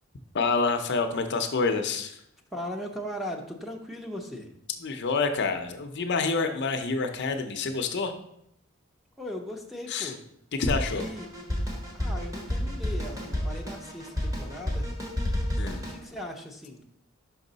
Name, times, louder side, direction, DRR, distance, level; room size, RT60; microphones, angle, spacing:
voice 1, 0.3-2.2 4.8-8.1 9.9-10.1 10.5-11.1 15.6-15.8, left 4 dB, 55° left, 7 dB, 0.6 m, -27 dB
voice 2, 2.5-4.5 9.2-10.2 10.9-11.3 11.9-14.9 15.9-17.0, left 1 dB, ahead, 2 dB, 0.6 m, -38 dB
Drum kit, 10.7-16.0, left 1 dB, 15° right, 1.1 m, -30 dB
5.7 x 5.4 x 4.0 m, 0.74 s
head